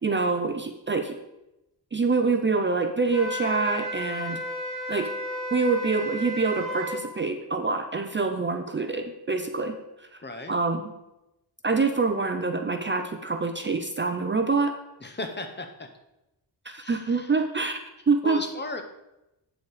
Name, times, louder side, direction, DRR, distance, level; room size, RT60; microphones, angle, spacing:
voice 1, 0.0-1.2 1.9-4.4 4.9-5.1 5.5-10.1 10.5-10.9 11.6-14.7 16.7-17.8 18.1-18.4, right 4 dB, 25° right, 6 dB, 0.5 m, -26 dB
Wind instrument woodwind instrument, 3.1-7.0, left 1 dB, ahead, 2.3 m, -33 dB
voice 2, 10.2-10.5 15.0-15.9 16.8-17.3 18.2-18.8, left 2 dB, 25° left, 6 dB, 0.9 m, -36 dB
8.2 x 7.1 x 4.8 m, 0.93 s
wide cardioid pair, 165°, 43 cm